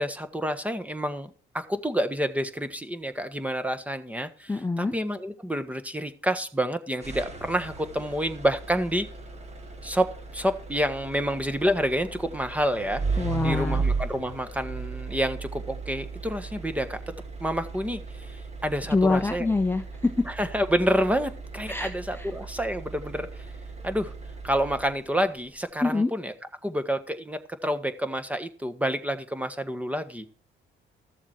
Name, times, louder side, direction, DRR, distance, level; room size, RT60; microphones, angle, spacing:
voice 1, 0.0-4.5 4.8-9.1 9.8-17.0 17.4-18.0 18.3-19.5 20.4-23.5 23.8-24.1 24.4-26.3 26.6-30.3, equal, 5° right, 9 dB, 1.5 m, -28 dB
voice 2, 4.5-4.9 13.2-13.9 18.9-20.3 21.7-22.3 25.8-26.1, left 3 dB, 10° left, 7 dB, 0.9 m, -25 dB
sound 1, 7.0-25.3, right 4 dB, 35° right, 2.3 m, -36 dB
13.5 x 7.3 x 4.5 m, 0.42 s
cardioid pair, 90°, 20 cm